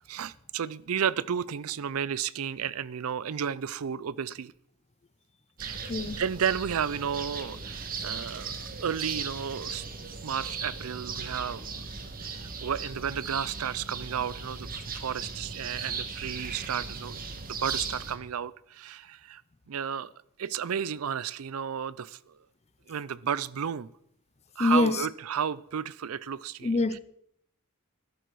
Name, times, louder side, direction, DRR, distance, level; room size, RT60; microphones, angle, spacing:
voice 1, 0.1-4.5 5.6-5.9 6.2-9.9 10.2-11.8 12.2-17.2 17.6-19.4 19.7-20.1 20.4-22.4 22.9-23.9 24.6-27.0, right 8 dB, 70° right, 0.5 m, -32 dB
sound 1, 5.6-18.2, right 5 dB, 40° right, 1.3 m, -37 dB
voice 2, 5.9-6.2 24.6-25.0 26.6-27.0, left 2 dB, 30° left, 0.6 m, -25 dB
12.5 x 12.0 x 4.7 m
head